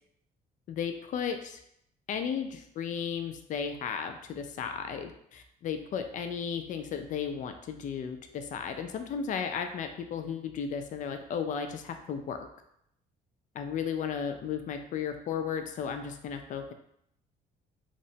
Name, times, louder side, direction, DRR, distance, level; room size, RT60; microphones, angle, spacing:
voice 1, 0.7-1.6 2.1-12.4 13.5-16.7, left 7 dB, 50° left, 7 dB, 0.4 m, -34 dB
2.9 x 2.1 x 2.7 m, 0.73 s
cardioid pair, 110°, 17 cm